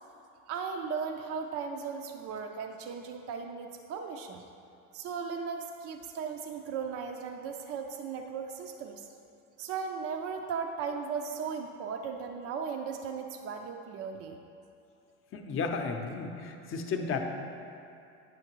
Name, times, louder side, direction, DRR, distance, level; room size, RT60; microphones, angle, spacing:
voice 1, 0.5-4.4 4.9-9.1 9.6-14.4, right 6 dB, 40° right, 4 dB, 0.4 m, -37 dB
voice 2, 15.3-17.2, left 4 dB, 35° left, 4 dB, 0.7 m, -33 dB
8.9 x 5.6 x 3.0 m, 2.6 s
supercardioid pair, 110°, 35 cm